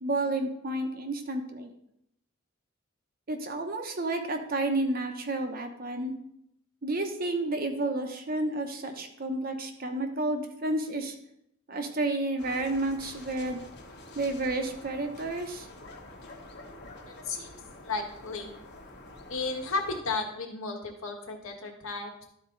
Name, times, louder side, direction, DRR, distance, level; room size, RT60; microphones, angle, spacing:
voice 1, 0.0-1.7 3.3-6.1 6.8-11.1 11.7-13.6 14.1-15.7, right 2 dB, 45° right, 5 dB, 0.9 m, -31 dB
sound 1, 12.4-20.0, left 2 dB, 55° left, 1.3 m, -48 dB
voice 2, 17.1-18.5 19.3-22.2, left 3 dB, 85° left, 2 dB, 1.5 m, -34 dB
12.5 x 4.3 x 3.9 m, 0.78 s
head